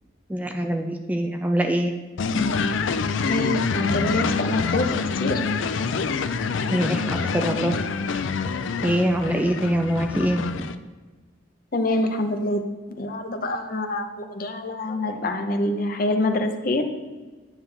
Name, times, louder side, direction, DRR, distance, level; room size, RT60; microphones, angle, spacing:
voice 1, 0.3-1.9 6.7-7.9 8.8-10.7, equal, 10° right, 4 dB, 0.3 m, -24 dB
sound 1, 2.2-10.7, left 5 dB, 75° left, 0.4 m, -26 dB
voice 2, 2.2-2.7 3.3-5.4 11.7-12.6 13.0-16.8, left 1 dB, 45° left, 6 dB, 0.7 m, -25 dB
9.1 x 7.4 x 3.3 m, 1.3 s
head